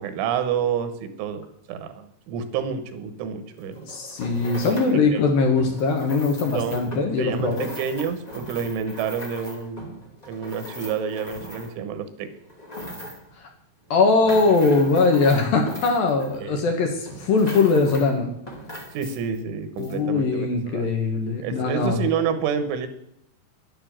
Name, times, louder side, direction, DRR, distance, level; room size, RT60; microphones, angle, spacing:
voice 1, 0.0-3.9 4.7-5.2 6.5-6.8 7.2-10.0 10.3-12.3 16.3-16.7 18.9-20.9 21.4-22.9, right 7 dB, 85° right, 9 dB, 3.6 m, -29 dB
sound 1, 3.6-5.0 5.5-11.9 12.4-13.4 13.9-16.7 17.1-18.2 18.5-19.4 19.8-19.9, equal, 20° left, 1.0 m, -39 dB
voice 2, 3.9-7.7 13.9-18.3 19.8-22.0, left 4 dB, 65° left, 3 dB, 2.7 m, -21 dB
11.0 x 9.3 x 7.5 m, 0.75 s
omnidirectional pair, 5.5 m